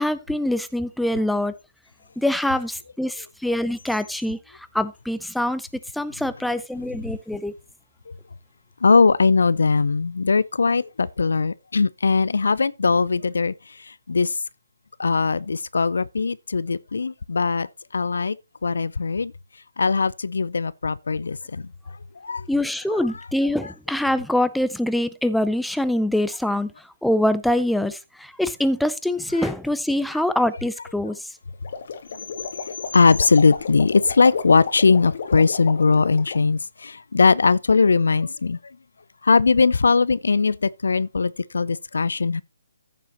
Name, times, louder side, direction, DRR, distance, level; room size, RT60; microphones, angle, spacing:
voice 1, 0.0-1.6 2.2-5.7 5.9-7.5 22.5-26.7 27.0-31.3, left 1 dB, ahead, 0.5 m, -24 dB
voice 2, 8.8-14.4 15.0-18.4 18.6-19.3 19.8-21.7 22.2-22.5 29.4-29.5 30.2-30.3 32.9-38.6 39.2-42.4, left 4 dB, 75° left, 0.5 m, -20 dB
sound 1, 31.5-36.4, left 5 dB, 50° left, 1.8 m, -33 dB
14.5 x 6.8 x 2.9 m
figure-of-eight pair, 145°, 0 cm